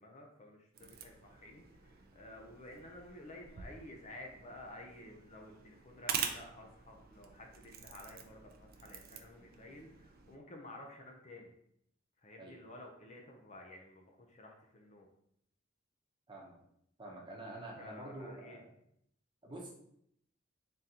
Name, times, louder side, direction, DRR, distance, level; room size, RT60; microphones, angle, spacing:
voice 1, 0.0-11.5 12.2-15.1 17.8-18.6, left 1 dB, 35° left, 1 dB, 0.5 m, -52 dB
sound 1, 0.7-10.4, right 7 dB, 50° right, 0.4 m, -46 dB
voice 2, 17.0-18.7 19.4-19.7, right 1 dB, 25° right, -2 dB, 0.8 m, -47 dB
3.7 x 3.7 x 2.8 m, 0.73 s
head